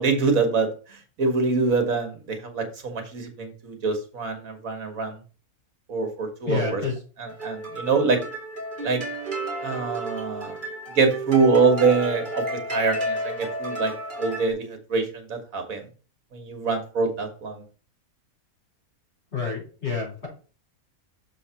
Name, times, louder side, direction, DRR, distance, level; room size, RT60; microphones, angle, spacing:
voice 1, 0.0-5.2 5.9-6.8 7.4-8.2 8.8-9.0 9.6-10.6 11.0-13.9 14.2-15.9 16.3-17.6, right 4 dB, 70° right, 5 dB, 1.7 m, -24 dB
voice 2, 6.4-7.0 8.1-8.3 19.3-20.3, left 5 dB, 45° left, -4 dB, 4.5 m, -29 dB
sound 1, 7.2-14.5, right 1 dB, 35° right, 1.8 m, -32 dB
6.7 x 4.0 x 5.6 m, 0.37 s
omnidirectional pair, 1.5 m